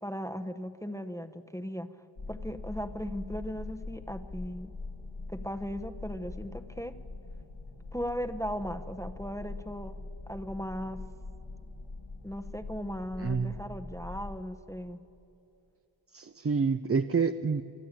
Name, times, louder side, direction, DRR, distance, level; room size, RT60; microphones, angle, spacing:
voice 1, 0.0-2.0 2.3-4.7 5.3-7.0 7.9-10.0 10.3-11.1 12.2-15.0, equal, 5° left, 8 dB, 0.8 m, -37 dB
sound 1, 2.2-14.4, left 3 dB, 90° left, 2.8 m, -43 dB
voice 2, 13.2-13.5 16.1-17.6, right 5 dB, 30° right, 10 dB, 0.5 m, -28 dB
23.5 x 13.0 x 8.8 m, 2.8 s
wide cardioid pair, 55°, 45 cm